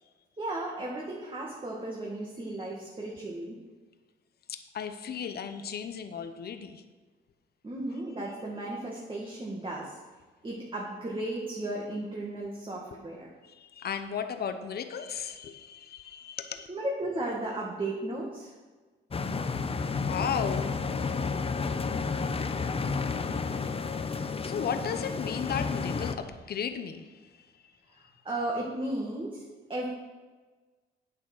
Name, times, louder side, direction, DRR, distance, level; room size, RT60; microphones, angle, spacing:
voice 1, 0.4-3.6 7.6-10.0 10.4-13.3 16.7-18.5 27.9-29.4 29.7-29.9, right 1 dB, 25° right, -3 dB, 2.3 m, -35 dB
voice 2, 4.5-6.8 12.9-13.0 13.4-16.7 19.9-20.8 22.9-27.7, left 7 dB, 50° left, 8 dB, 1.0 m, -36 dB
sound 1, 19.1-26.1, left 4 dB, 30° left, 0.8 m, -31 dB
9.2 x 8.6 x 6.2 m, 1.3 s
cardioid pair, 90°, 20 cm